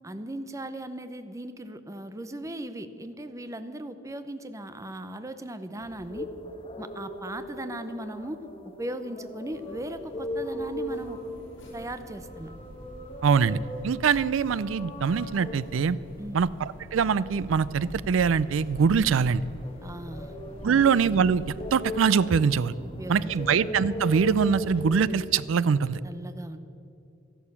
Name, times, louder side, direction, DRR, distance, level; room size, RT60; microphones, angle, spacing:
voice 1, 0.0-6.3 6.8-8.4 8.8-11.2 11.7-12.5 16.2-16.4 19.8-20.4 20.6-20.9 22.8-23.5 26.0-26.6, right 1 dB, 15° right, 10 dB, 0.7 m, -38 dB
sound 1, 5.8-25.1, equal, 30° left, 1.3 m, -39 dB
sound 2, 9.5-21.8, equal, 65° left, 3.4 m, -45 dB
voice 2, 13.2-13.6 13.8-16.0 16.3-19.4 20.6-22.7 23.1-26.0, right 6 dB, 85° right, 19 dB, 0.4 m, -23 dB
13.0 x 11.5 x 7.1 m, 2.6 s
head